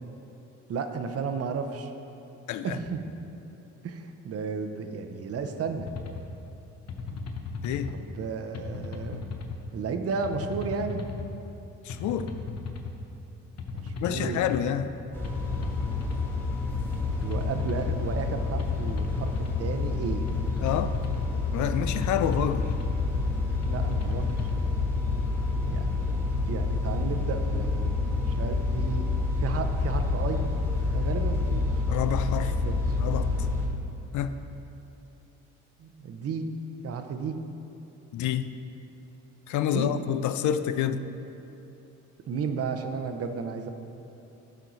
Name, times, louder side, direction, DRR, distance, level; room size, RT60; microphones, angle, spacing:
voice 1, 0.7-1.9 2.6-3.0 3.8-5.9 7.9-9.2 9.7-11.0 13.7-14.5 17.2-20.3 23.7-24.5 25.6-25.9 26.5-29.1 29.4-30.5 30.9-31.7 32.6-33.0 35.8-36.4 36.8-37.4 39.7-39.9 42.3-43.7, right 5 dB, 50° right, 7 dB, 0.7 m, -33 dB
voice 2, 2.5-2.8 7.6-8.0 11.8-12.3 14.0-14.9 20.6-21.0 21.5-22.7 31.9-32.6 33.0-33.3 34.1-34.3 38.1-38.5 39.5-41.0, left 10 dB, 75° left, 11 dB, 0.4 m, -28 dB
sound 1, 5.8-6.2 6.9-7.9 8.5-9.6 10.2-11.3 11.9-12.9 13.6-14.6 15.2-16.3 16.9-18.0 18.6-19.6 20.3-21.3 21.9-23.0 23.6-24.7, left 4 dB, 60° left, 0.9 m, -36 dB
sound 2, 15.1-33.7, left 3 dB, 5° left, 1.6 m, -28 dB
12.0 x 4.5 x 4.0 m, 2.9 s
cardioid pair, 90°, 30 cm